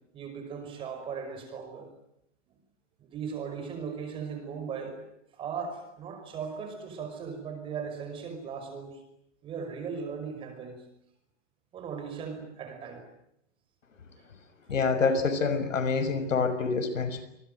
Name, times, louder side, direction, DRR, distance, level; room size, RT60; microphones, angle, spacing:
voice 1, 0.1-1.9 3.1-5.0 5.3-9.0 9.4-10.9 11.7-13.1, right 6 dB, 15° right, 6 dB, 5.4 m, -38 dB
voice 2, 14.7-17.2, left 4 dB, 90° left, 11 dB, 6.3 m, -26 dB
28.0 x 22.5 x 9.3 m, 0.78 s
hypercardioid pair, 165°, 37 cm